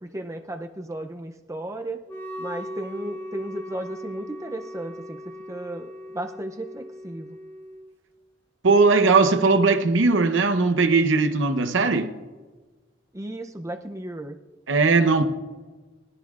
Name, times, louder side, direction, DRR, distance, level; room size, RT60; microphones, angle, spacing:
voice 1, 0.0-2.0 2.4-5.2 5.5-7.4 13.1-14.4, right 1 dB, 15° right, 5 dB, 0.5 m, -34 dB
Wind instrument woodwind instrument, 2.1-7.9, equal, 10° left, 0.8 m, -38 dB
voice 2, 8.6-12.1 14.7-15.2, right 4 dB, 75° right, 8 dB, 0.9 m, -19 dB
21.0 x 14.0 x 2.5 m, 1.3 s
head